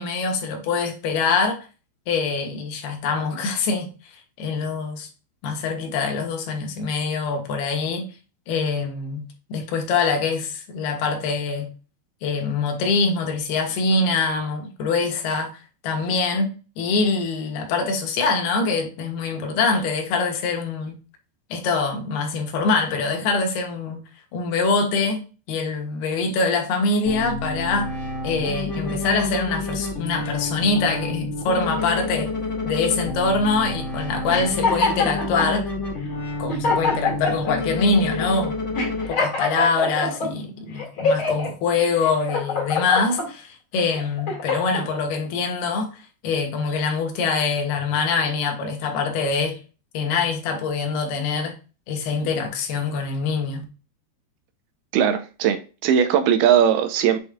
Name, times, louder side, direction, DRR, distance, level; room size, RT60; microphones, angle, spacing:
voice 1, 0.0-1.6 2.1-3.9 4.4-5.1 5.4-8.1 8.5-11.7 12.2-15.5 15.8-21.0 21.5-24.0 24.3-27.9 28.2-32.3 32.6-35.7 36.4-38.6 39.1-49.6 49.9-51.6 51.9-53.6, left 4 dB, 75° left, 3.1 m, -24 dB
sound 1, 27.0-39.1, left 2 dB, 25° left, 1.8 m, -29 dB
sound 2, 34.3-35.5 36.1-36.2 36.5-37.5 38.1-38.3 38.7-40.3 40.8-41.5 42.0-43.3 43.8-44.8, left 3 dB, 40° left, 2.2 m, -24 dB
voice 2, 54.9-57.2, right 9 dB, 80° right, 2.5 m, -19 dB
7.9 x 5.2 x 2.4 m
omnidirectional pair, 4.8 m